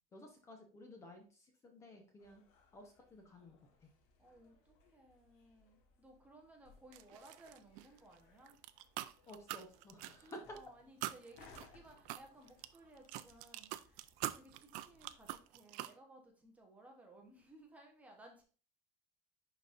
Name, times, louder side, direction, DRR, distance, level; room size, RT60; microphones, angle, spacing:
voice 1, 0.1-2.4 2.7-3.9 9.3-10.6, left 1 dB, 20° left, 4 dB, 0.9 m, -54 dB
sound 1, 2.2-15.4, left 4 dB, 75° left, 1.4 m, -67 dB
voice 2, 4.2-8.6 10.2-18.4, right 1 dB, 10° right, 1 dB, 1.0 m, -60 dB
sound 2, 6.9-8.1 8.5-10.6 11.0-16.0, right 15 dB, 65° right, 0.4 m, -44 dB
10.5 x 4.0 x 2.5 m, 0.38 s
cardioid pair, 180°, 14 cm